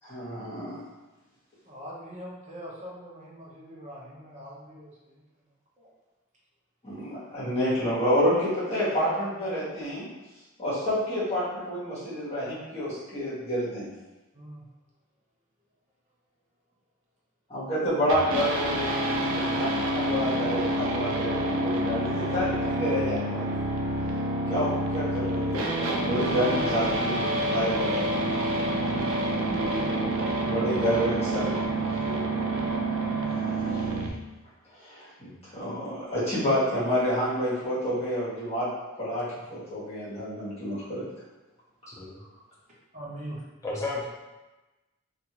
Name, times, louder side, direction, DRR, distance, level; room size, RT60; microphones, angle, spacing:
voice 1, 0.0-0.8 6.8-10.1 10.6-13.9 17.5-23.6 24.5-28.3 30.4-31.8 33.7-33.9 34.8-38.7 39.0-41.0, equal, 30° left, -11 dB, 1.2 m, -29 dB
voice 2, 1.7-5.2 5.8-5.9 14.3-14.6 29.4-30.0 42.9-43.4, equal, 35° right, -5 dB, 0.8 m, -41 dB
sound 1, 18.1-34.1, right 1 dB, 80° right, 0.4 m, -28 dB
voice 3, 43.6-44.0, left 3 dB, 15° left, -6 dB, 0.6 m, -32 dB
2.5 x 2.5 x 2.9 m, 1.1 s
head